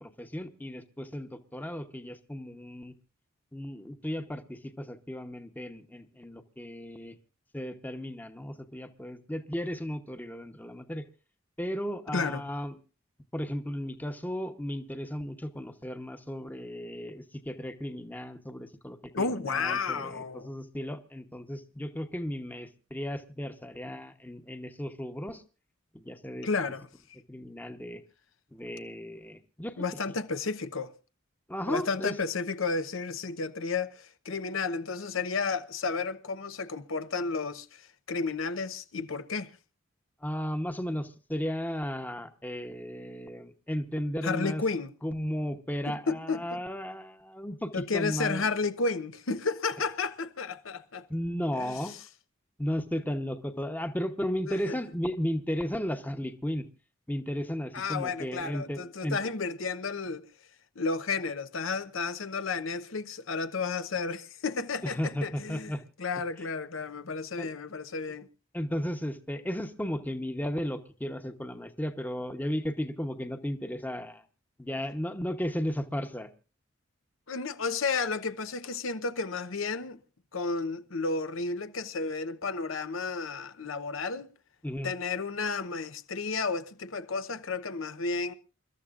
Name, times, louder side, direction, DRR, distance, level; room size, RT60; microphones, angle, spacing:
voice 1, 0.0-2.9 3.5-7.2 7.5-11.1 11.6-12.8 13.3-25.4 25.9-26.5 27.3-28.0 28.5-29.7 30.1-30.2 31.5-32.1 40.2-44.6 45.0-48.5 51.1-51.9 52.6-56.7 57.1-59.2 64.8-65.8 66.4-66.5 67.4-67.5 68.5-74.2 74.6-76.3 84.6-84.9, equal, 10° left, 1.0 m, -35 dB
voice 2, 12.1-12.4 19.1-20.5 26.4-26.9 29.8-30.9 31.7-39.5 44.2-44.9 45.9-46.6 47.7-51.0 51.6-51.7 54.5-54.8 57.7-60.3 60.8-65.7 66.0-68.3 77.3-80.0 80.3-84.3 84.8-88.3, left 4 dB, 85° left, 0.9 m, -32 dB
28.5 x 13.0 x 2.5 m
head